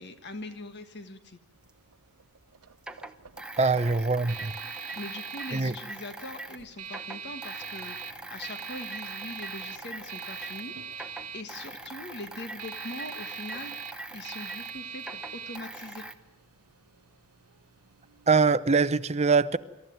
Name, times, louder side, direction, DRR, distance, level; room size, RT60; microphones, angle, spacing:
voice 1, 0.0-1.4 3.8-4.0 4.7-16.1, left 2 dB, 50° left, 1.4 m, -42 dB
sound 1, 1.6-18.4, right 6 dB, 90° right, 0.9 m, -43 dB
sound 2, 1.7-1.8 2.8-6.6 6.8-10.7 10.9-16.1, right 2 dB, 5° right, 0.9 m, -42 dB
voice 2, 3.6-4.5 5.5-5.7 18.3-19.6, right 4 dB, 30° right, 0.7 m, -23 dB
26.5 x 14.0 x 9.3 m
head